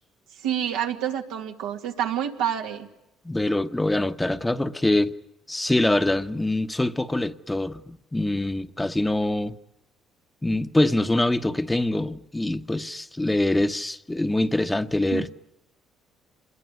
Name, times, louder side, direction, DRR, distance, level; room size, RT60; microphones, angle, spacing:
voice 1, 0.4-2.9 15.1-15.3, right 10 dB, 85° right, 2.3 m, -28 dB
voice 2, 3.2-5.1 5.5-9.5 10.4-15.3, left 1 dB, 15° left, 1.1 m, -24 dB
25.5 x 21.0 x 9.5 m
supercardioid pair, 65°, 0 cm